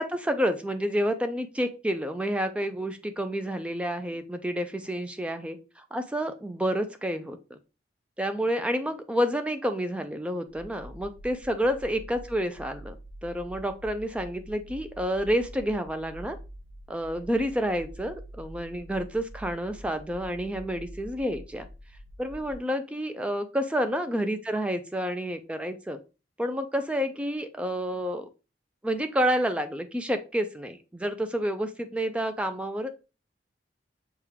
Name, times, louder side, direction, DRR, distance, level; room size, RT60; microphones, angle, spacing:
voice 1, 0.0-7.6 8.2-13.0 13.2-16.4 16.9-21.7 22.2-26.0 26.4-28.3 28.8-32.9, equal, 5° right, 8 dB, 0.3 m, -29 dB
sound 1, 10.5-22.5, equal, 60° right, 0.7 m, -46 dB
6.4 x 2.2 x 3.4 m, 0.31 s
head